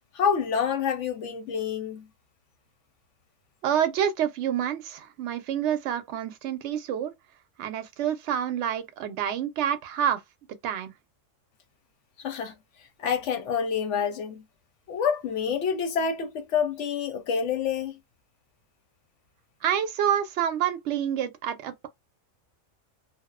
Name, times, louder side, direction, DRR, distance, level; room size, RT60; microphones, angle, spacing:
voice 1, 0.1-2.0 12.2-12.5 13.0-14.4 14.9-18.0, left 7 dB, 70° left, 0.9 m, -27 dB
voice 2, 3.6-7.1 7.6-10.2 10.6-10.9 19.6-21.9, right 9 dB, 70° right, 0.8 m, -28 dB
2.5 x 2.1 x 2.3 m
omnidirectional pair, 1.4 m